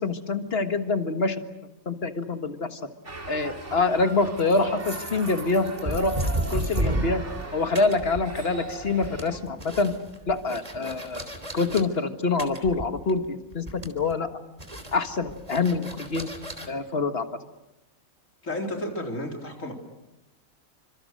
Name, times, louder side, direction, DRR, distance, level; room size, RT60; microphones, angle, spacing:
voice 1, 0.0-1.4 1.9-2.8 3.3-6.2 6.5-7.2 7.5-9.9 10.3-11.3 11.5-14.4 14.9-16.3 16.7-17.3, left 3 dB, 45° left, 8 dB, 1.9 m, -26 dB
sound 1, 3.0-9.4, right 3 dB, 55° right, 3.4 m, -39 dB
sound 2, 4.4-7.5 7.8-8.6 8.9-11.8 12.4-13.3 13.5-14.1 14.6-16.7, right 1 dB, 25° right, 3.3 m, -32 dB
voice 2, 18.4-19.7, left 1 dB, 65° left, 2 dB, 4.4 m, -32 dB
29.5 x 26.0 x 6.5 m, 0.97 s
omnidirectional pair, 1.4 m